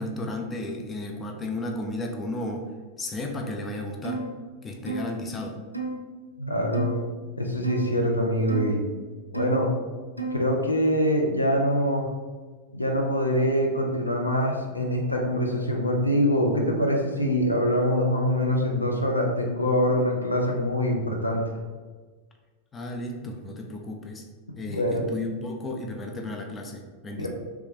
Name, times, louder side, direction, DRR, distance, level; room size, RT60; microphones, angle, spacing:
voice 1, 0.0-2.6 3.0-4.2 4.6-5.6 22.7-24.2 24.6-27.3, left 2 dB, 20° left, 2 dB, 0.5 m, -33 dB
sound 1, 4.0-4.3 4.9-5.1 5.7-6.0 6.7-7.0 7.6-7.9 8.5-8.7 9.3-9.6 10.2-10.5, right 3 dB, 85° right, 0.4 m, -31 dB
voice 2, 6.4-6.9 7.4-8.8 9.3-9.7 10.3-12.1 12.7-21.4 24.7-25.0 27.2-27.3, equal, 85° left, 0 dB, 0.5 m, -24 dB
3.2 x 3.1 x 3.3 m, 1.4 s
figure-of-eight pair, 90°, 0 cm